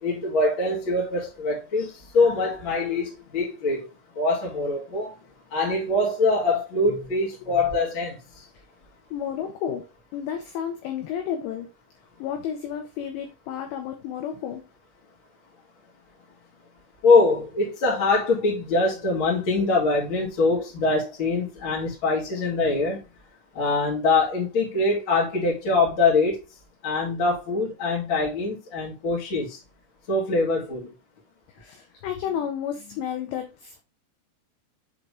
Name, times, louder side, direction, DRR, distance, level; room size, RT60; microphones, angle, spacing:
voice 1, 0.0-3.9 4.1-5.2 5.5-8.5 17.0-23.0 23.5-26.4 26.8-29.6 30.1-30.9, left 3 dB, 35° left, 2.1 m, -23 dB
voice 2, 9.1-9.9 10.1-11.7 12.2-14.6 31.6-33.8, left 9 dB, 80° left, 2.6 m, -31 dB
7.6 x 3.9 x 3.4 m
omnidirectional pair, 5.8 m